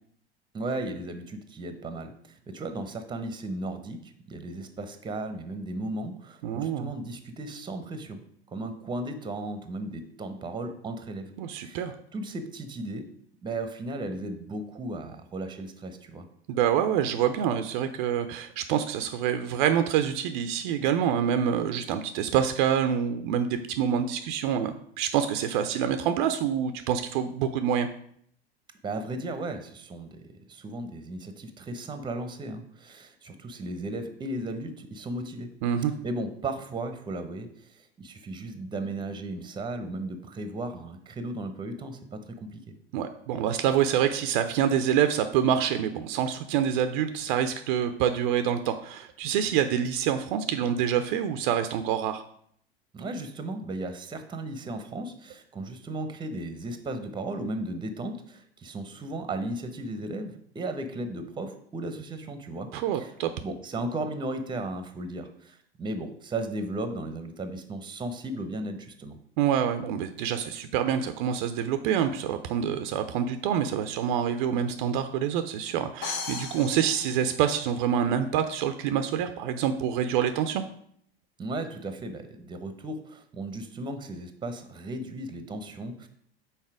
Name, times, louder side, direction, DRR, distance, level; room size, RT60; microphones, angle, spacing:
voice 1, 0.5-11.3 11.6-13.1 13.4-16.3 28.8-35.5 36.0-42.7 52.9-63.1 63.4-69.2 81.4-86.1, right 2 dB, 15° right, 9 dB, 0.8 m, -35 dB
voice 2, 6.4-6.9 11.4-12.0 16.5-27.9 35.6-35.9 42.9-52.2 62.7-63.3 69.4-80.6, right 9 dB, 50° right, 9 dB, 0.5 m, -26 dB
sound 1, 76.0-78.0, left 5 dB, 65° left, 1.0 m, -37 dB
5.7 x 4.2 x 4.7 m, 0.66 s
figure-of-eight pair, 85°, 31 cm